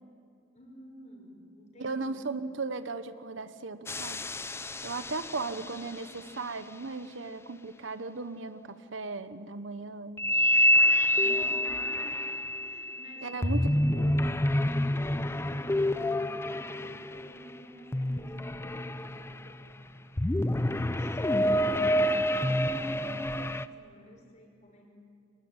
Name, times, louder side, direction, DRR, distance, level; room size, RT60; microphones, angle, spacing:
voice 1, 0.5-2.3 5.3-6.0 11.1-12.1 12.6-13.6 14.8-20.3 20.6-24.9, equal, 40° left, 1 dB, 5.4 m, -51 dB
voice 2, 1.8-4.2 4.8-10.3 13.2-13.6 13.9-14.1, right 3 dB, 75° right, 11 dB, 1.0 m, -37 dB
sound 1, 3.9-5.8 10.2-17.5 17.9-19.6 20.2-23.7, left 1 dB, 15° left, 0.5 m, -27 dB
23.5 x 19.0 x 9.0 m, 2.5 s
head